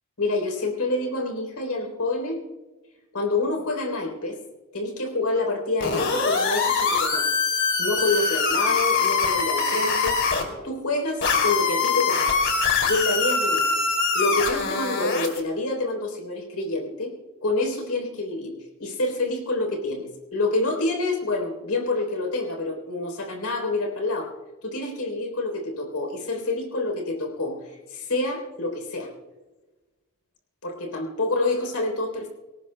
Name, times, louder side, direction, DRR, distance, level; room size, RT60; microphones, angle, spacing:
voice 1, 0.2-2.4 3.1-4.4 4.7-7.3 7.8-10.2 10.6-12.3 12.8-13.8 14.1-17.1 17.4-18.5 18.8-24.3 24.6-29.1 30.6-32.3, left 2 dB, 90° left, 3 dB, 3.5 m, -27 dB
sound 1, 5.8-10.4 11.2-15.4, left 4 dB, 60° left, 2.8 m, -23 dB
26.0 x 18.0 x 2.2 m, 1.2 s
head